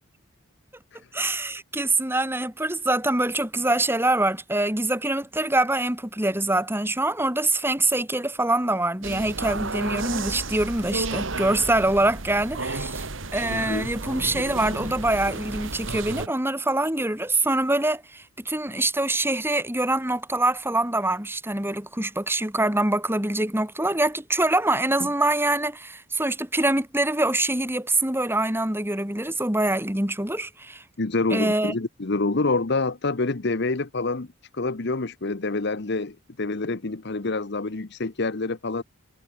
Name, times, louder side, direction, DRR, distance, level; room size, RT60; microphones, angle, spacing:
voice 1, 1.1-13.1 13.3-30.8 31.3-31.7, right 2 dB, 10° right, 3.4 m, -24 dB
sound 1, 9.0-16.3, right 3 dB, 70° right, 2.1 m, -32 dB
voice 2, 13.5-13.9 25.0-25.1 31.0-34.3 34.5-38.8, left 3 dB, 55° left, 1.0 m, -27 dB
head